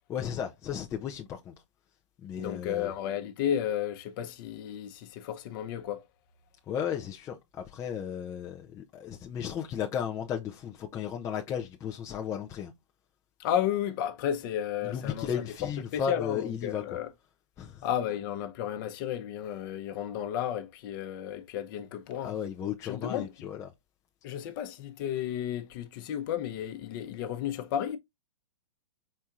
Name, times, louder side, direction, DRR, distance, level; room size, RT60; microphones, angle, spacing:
voice 1, 0.1-1.5 2.2-2.9 6.7-12.7 14.8-17.0 17.6-17.8 22.2-23.7, left 8 dB, 20° left, 0.5 m, -35 dB
voice 2, 2.4-6.0 13.4-17.1 17.8-22.4 22.8-23.3 24.2-28.0, left 10 dB, 45° left, 0.9 m, -33 dB
4.5 x 4.3 x 2.5 m
hypercardioid pair, 120°, 16 cm